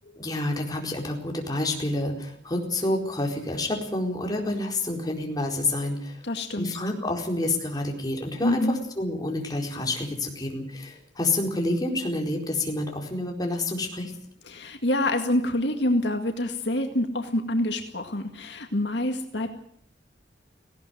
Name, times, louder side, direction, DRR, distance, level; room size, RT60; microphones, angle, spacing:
voice 1, 0.2-6.2 6.5-14.1, left 2 dB, 20° left, 1 dB, 4.5 m, -28 dB
voice 2, 6.2-6.8 8.4-8.7 14.5-19.5, left 1 dB, 70° left, 5 dB, 2.0 m, -26 dB
18.5 x 17.0 x 9.4 m, 0.66 s
head